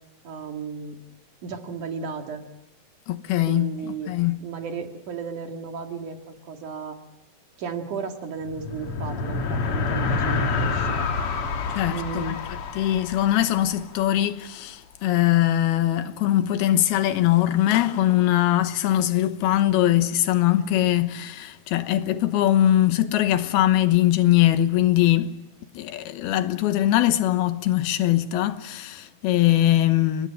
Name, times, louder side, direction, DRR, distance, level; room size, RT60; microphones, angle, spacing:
voice 1, 0.2-1.0 1.4-2.4 3.5-4.1 4.4-7.0 7.6-11.1 11.9-12.4, right 5 dB, 55° right, 3.0 m, -34 dB
voice 2, 3.1-4.4 11.8-12.4 12.7-25.3 25.7-30.3, left 13 dB, 80° left, 3.0 m, -21 dB
sound 1, 8.4-14.1, left 4 dB, 50° left, 1.9 m, -28 dB
29.5 x 18.5 x 9.7 m
omnidirectional pair, 4.6 m